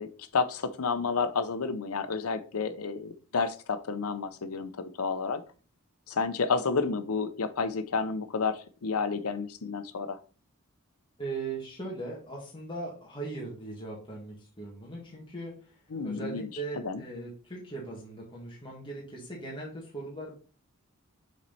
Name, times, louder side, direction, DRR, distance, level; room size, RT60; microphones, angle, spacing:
voice 1, 0.0-5.4 6.1-10.2 15.9-16.5 16.8-17.0, left 4 dB, 80° left, 10 dB, 0.7 m, -30 dB
voice 2, 11.2-15.5 16.0-20.3, right 3 dB, 25° left, -4 dB, 1.9 m, -39 dB
7.2 x 4.4 x 4.2 m, 0.37 s
head